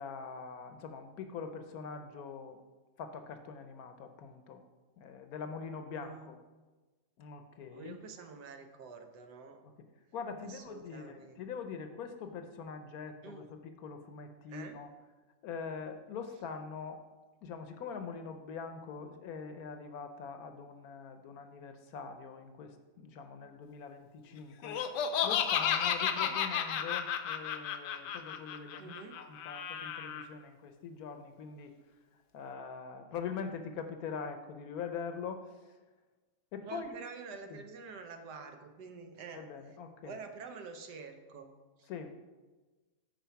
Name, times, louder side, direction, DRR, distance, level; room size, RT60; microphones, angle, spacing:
voice 1, 0.0-2.6 3.0-4.6 5.0-6.4 7.2-8.0 9.6-9.9 10.1-14.9 15.4-17.0 17.4-24.8 25.2-31.7 32.3-35.5 36.5-36.9 37.5-37.6 39.3-40.2 41.9-42.2, left 6 dB, 65° left, 7 dB, 1.1 m, -43 dB
voice 2, 5.9-6.3 7.7-9.6 10.4-11.4 13.2-13.4 14.5-14.8 26.2-26.4 28.8-29.2 36.6-39.4 40.0-41.5 41.8-41.9, right 5 dB, 75° right, 6 dB, 1.4 m, -47 dB
Laughter, 24.6-30.2, left 8 dB, 90° left, 1.3 m, -33 dB
9.2 x 4.4 x 5.7 m, 1.2 s
omnidirectional pair, 1.8 m